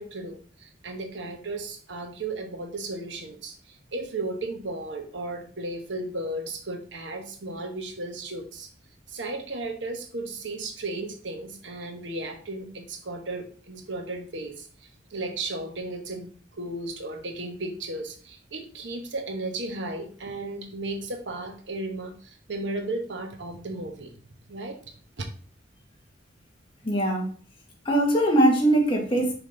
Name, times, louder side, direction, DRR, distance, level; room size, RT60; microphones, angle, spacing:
voice 1, 0.0-8.7 9.1-24.1 24.5-25.3, right 2 dB, 75° right, 5 dB, 1.1 m, -35 dB
voice 2, 26.8-27.3 27.9-29.3, right 1 dB, 30° left, -1 dB, 1.8 m, -21 dB
5.8 x 5.0 x 3.8 m, 0.43 s
head